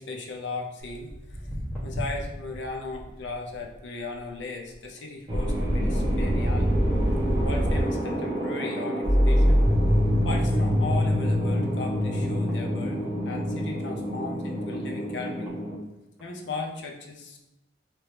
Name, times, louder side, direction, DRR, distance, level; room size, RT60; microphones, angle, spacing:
voice 1, 0.0-1.5 1.8-6.7 7.4-9.6 10.2-15.5 16.2-17.4, left 3 dB, 90° left, 2 dB, 0.6 m, -37 dB
Walk footsteps, 0.8-7.5 7.8-8.1 8.7-8.8 9.5-9.6 10.0-10.1 10.2-10.3 10.9-11.1 11.7-13.3 13.9-14.0 14.7-14.8 15.2-15.5 16.2-16.3, equal, 5° right, 1.2 m, -40 dB
sound 1, 5.3-15.8, equal, 25° right, 0.7 m, -24 dB
3.0 x 2.9 x 3.2 m, 0.94 s
head